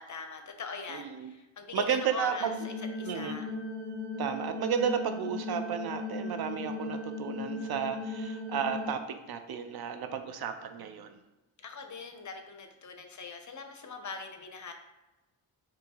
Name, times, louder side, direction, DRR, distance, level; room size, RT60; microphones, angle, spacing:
voice 1, 0.0-3.5 11.6-14.7, left 5 dB, 40° left, 6 dB, 0.6 m, -42 dB
voice 2, 0.9-1.3 1.7-2.5 3.0-3.4 4.2-9.0 9.3-11.2, right 8 dB, 50° right, 8 dB, 0.5 m, -33 dB
sound 1, 2.4-8.9, left 3 dB, 70° right, 1.3 m, -37 dB
4.4 x 2.8 x 2.9 m, 1.0 s
supercardioid pair, 45°, 49 cm